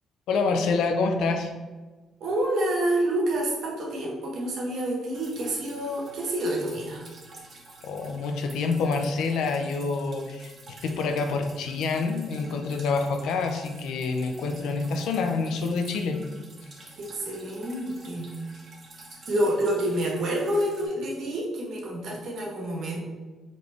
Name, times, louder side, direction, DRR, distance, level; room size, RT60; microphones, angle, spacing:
voice 1, 0.3-1.5 7.8-10.5 10.8-16.2, left 4 dB, 85° left, 5 dB, 0.5 m, -27 dB
voice 2, 2.2-7.0 17.0-18.4 19.3-23.0, right 1 dB, 70° right, -2 dB, 1.2 m, -28 dB
Drip, 5.1-20.9, right 2 dB, 45° right, 1.1 m, -49 dB
4.0 x 3.1 x 3.4 m, 1.3 s
cardioid pair, 90°, 0 cm